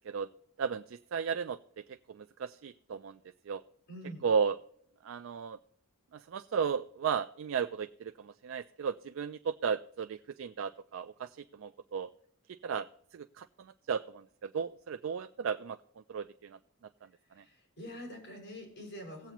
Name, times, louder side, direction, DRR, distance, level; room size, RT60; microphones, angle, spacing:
voice 1, 0.6-1.6 2.1-3.2 3.5-3.6 4.2-4.6 5.0-5.6 6.1-12.1 12.6-12.9 13.1-15.8 16.1-16.6, right 6 dB, 75° right, 10 dB, 0.4 m, -34 dB
voice 2, 3.9-4.2 17.3-19.3, equal, 60° left, -1 dB, 5.8 m, -45 dB
18.5 x 8.1 x 3.0 m, 0.66 s
head